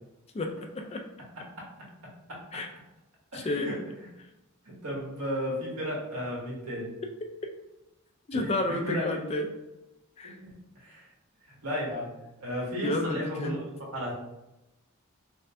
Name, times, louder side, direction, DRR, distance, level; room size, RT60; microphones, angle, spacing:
voice 1, 0.3-1.0 2.5-2.7 3.3-3.7 8.3-9.5 10.2-10.4 12.8-13.6, left 2 dB, 30° left, 4 dB, 0.3 m, -31 dB
voice 2, 3.3-3.7 4.6-6.9 8.3-9.2 10.2-10.3 10.8-11.1 11.5-12.1 12.4-13.6 13.9-14.1, equal, 85° right, -3 dB, 1.2 m, -34 dB
3.1 x 2.7 x 3.3 m, 0.95 s
head